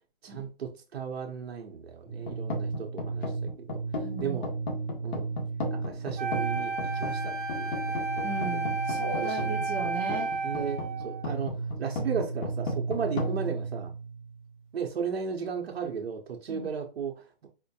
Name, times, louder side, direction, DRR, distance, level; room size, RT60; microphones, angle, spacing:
voice 1, 0.2-3.3 3.7-3.8 4.2-4.5 5.0-5.3 5.7-7.7 9.2-9.5 10.4-13.9 14.7-17.5, right 6 dB, 90° right, 0.9 m, -35 dB
sound 1, 2.1-14.5, right 1 dB, 55° left, 1.3 m, -34 dB
voice 2, 4.0-4.4 8.2-10.3 16.5-16.7, right 2 dB, 20° right, 0.7 m, -36 dB
Wind instrument woodwind instrument, 6.2-11.3, right 3 dB, 55° right, 0.8 m, -32 dB
4.3 x 2.1 x 2.8 m
hypercardioid pair, 155°, 30 cm